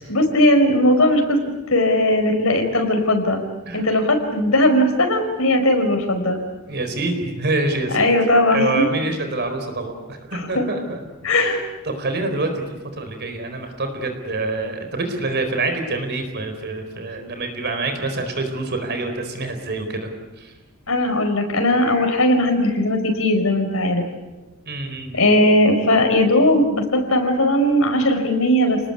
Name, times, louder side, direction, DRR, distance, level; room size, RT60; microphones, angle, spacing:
voice 1, 0.1-1.4 1.7-3.4 3.7-6.4 7.9-8.8 10.6-10.7 11.2-11.6 20.9-24.0 25.1-28.8, left 1 dB, 70° left, 4 dB, 5.2 m, -18 dB
voice 2, 6.7-8.0 8.5-11.0 11.3-11.6 11.8-20.1 20.4-20.5 24.7-25.3, right 2 dB, 50° right, 6 dB, 4.3 m, -26 dB
30.0 x 20.0 x 8.5 m, 1.1 s
head